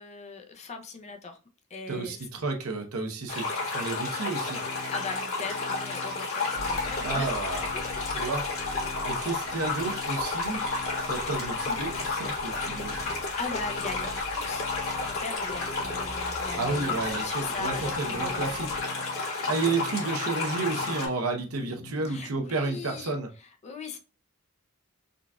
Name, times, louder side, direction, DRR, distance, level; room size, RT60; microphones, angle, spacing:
voice 1, 0.0-1.4 1.7-2.3 4.9-8.2 12.5-14.7 15.0-18.6 18.9-19.0 19.4-19.5 22.0-24.0, left 4 dB, 30° left, 0.5 m, -40 dB
voice 2, 1.9-4.6 7.0-7.6 8.2-8.4 9.0-10.6 11.1-13.1 16.6-18.7 19.5-23.3, right 3 dB, 70° right, 0.7 m, -31 dB
sound 1, 3.3-21.1, left 3 dB, 70° left, 1.5 m, -31 dB
sound 2, 4.1-22.3, left 5 dB, 5° right, 1.1 m, -47 dB
sound 3, 6.6-18.8, equal, 45° right, 1.3 m, -46 dB
3.8 x 2.4 x 2.2 m
head